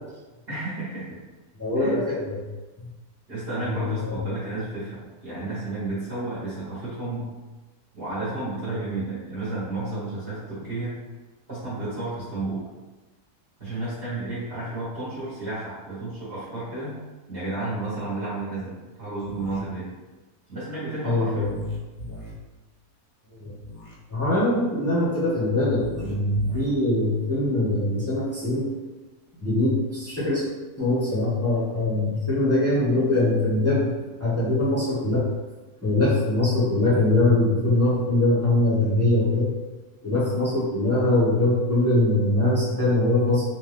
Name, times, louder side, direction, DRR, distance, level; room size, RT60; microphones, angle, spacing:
voice 1, 0.5-1.2 1.8-2.0 3.3-7.3 7.9-11.0 11.5-12.7 13.6-16.9 17.3-19.9 20.5-21.5, right 2 dB, 40° right, -12 dB, 1.7 m, -32 dB
voice 2, 1.6-2.4 2.8-2.9 3.6-4.1 21.0-21.6 23.3-23.5 24.1-28.7 29.4-30.5 30.8-33.9 34.2-35.3 35.8-39.6 40.0-43.4, left 2 dB, 10° left, -9 dB, 1.0 m, -22 dB
sound 1, 19.2-19.6 21.4-22.3 23.6-23.9 25.7-26.7, equal, 45° left, 0.9 m, -39 dB
3.9 x 2.7 x 3.3 m, 1.2 s
omnidirectional pair, 1.6 m